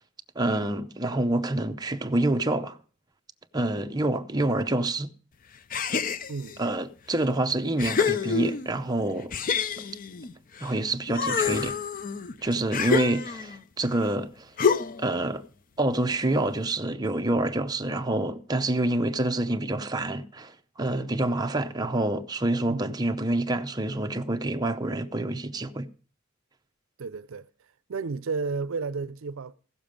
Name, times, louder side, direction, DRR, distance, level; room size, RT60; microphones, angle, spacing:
voice 1, 0.4-2.8 3.5-5.1 6.6-9.3 10.6-11.8 12.4-14.5 15.0-15.5 15.8-25.9, right 2 dB, 20° right, 0.6 m, -27 dB
sound 1, 5.7-6.6 7.2-7.3 7.8-8.8 9.3-10.7 11.1-13.6 14.6-15.1, left 6 dB, 40° left, 0.5 m, -27 dB
voice 2, 6.3-6.6 12.6-12.7 13.0-13.2 22.7-22.8 27.0-27.5 27.9-29.5, right 4 dB, 75° right, 0.5 m, -32 dB
15.5 x 7.0 x 5.1 m
head